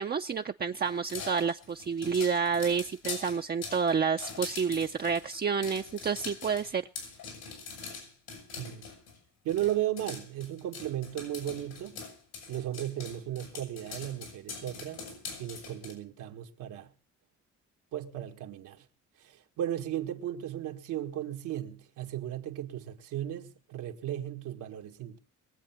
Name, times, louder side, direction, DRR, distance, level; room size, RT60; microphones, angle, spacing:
voice 1, 0.0-6.8, right 6 dB, 30° right, 0.6 m, -29 dB
sound 1, 0.8-9.2 9.5-15.9, left 5 dB, 85° left, 7.1 m, -43 dB
voice 2, 8.6-8.9 9.4-12.0 12.5-15.0 15.4-16.9 17.9-18.9 19.2-25.2, right 12 dB, 90° right, 1.9 m, -35 dB
22.0 x 8.1 x 5.9 m
cardioid pair, 90°, 30 cm